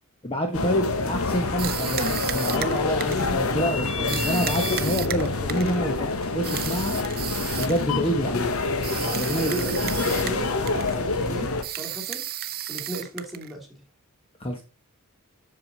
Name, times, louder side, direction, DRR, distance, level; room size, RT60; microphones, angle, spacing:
voice 1, 0.2-7.0 7.6-8.5 9.0-9.5 14.4-14.6, equal, 25° left, 1.1 m, -27 dB
sound 1, 0.5-11.6, left 3 dB, 70° left, 1.1 m, -27 dB
Spray Paint, 1.6-3.3 4.1-5.8 6.4-7.8 8.8-10.4 10.7-11.0 11.6-13.5, right 12 dB, 45° right, 0.6 m, -33 dB
voice 2, 4.4-4.8 8.9-12.2 12.7-13.8, right 1 dB, ahead, 2.4 m, -35 dB
7.8 x 6.9 x 4.0 m
head